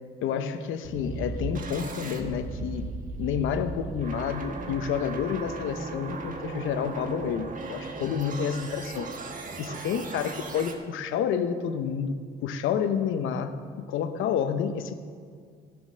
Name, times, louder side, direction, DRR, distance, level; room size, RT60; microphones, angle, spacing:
voice 1, 0.2-2.9 3.2-9.1 9.6-12.1 12.4-13.6 13.9-14.9, left 7 dB, 85° left, 9 dB, 0.8 m, -29 dB
sound 1, 0.8-10.7, right 3 dB, 40° right, 1.3 m, -37 dB
14.5 x 6.2 x 6.3 m, 2.1 s
cardioid pair, 90°, 20 cm